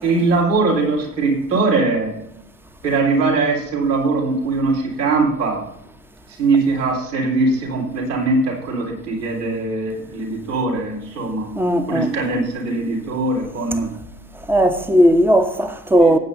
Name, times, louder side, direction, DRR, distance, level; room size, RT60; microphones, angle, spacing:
voice 1, 0.0-2.1 2.8-5.7 6.4-11.5 11.9-13.9 16.0-16.1, right 3 dB, 75° right, 4.1 m, -21 dB
voice 2, 11.6-12.1 14.5-16.2, equal, 5° right, 0.9 m, -16 dB
19.0 x 8.6 x 2.7 m
hypercardioid pair, 85°, 49 cm